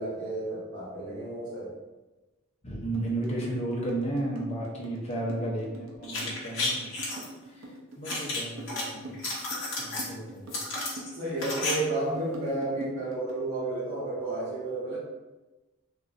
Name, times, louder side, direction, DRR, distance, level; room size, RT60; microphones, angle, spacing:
voice 1, 0.0-1.7 11.1-15.0, right 2 dB, 65° right, -10 dB, 1.1 m, -32 dB
voice 2, 2.6-6.9 7.5-9.2 9.8-10.6, right 1 dB, 30° left, -3 dB, 0.6 m, -33 dB
sound 1, 2.9-13.5, right 1 dB, 80° right, 0.5 m, -43 dB
sound 2, 6.0-7.2 8.0-8.8 9.1-10.1 10.5-11.7 12.0-12.1, left 2 dB, 65° left, 0.7 m, -32 dB
2.9 x 2.6 x 2.5 m, 1.1 s
head